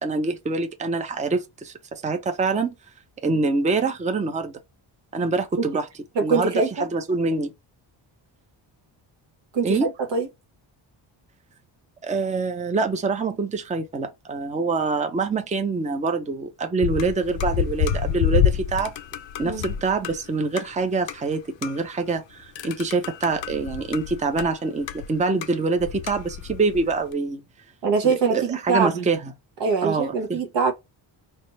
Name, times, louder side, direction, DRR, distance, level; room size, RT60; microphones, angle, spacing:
voice 1, 0.0-2.7 3.2-4.5 5.1-5.9 6.2-6.5 6.8-7.5 9.6-9.9 12.0-18.9 19.4-27.4 28.0-29.3 29.8-30.4, right 3 dB, 15° right, 0.5 m, -25 dB
voice 2, 6.1-6.9 9.5-10.3 19.4-19.7 27.8-29.1 29.6-30.7, right 5 dB, 75° right, 1.1 m, -23 dB
sound 1, 16.8-20.2 20.6-20.7 21.1-21.2 21.6-21.9 22.6-24.5 24.8-25.5 25.8-27.1, left 9 dB, 80° left, 0.6 m, -27 dB
3.4 x 2.0 x 4.1 m
cardioid pair, 130°, 44 cm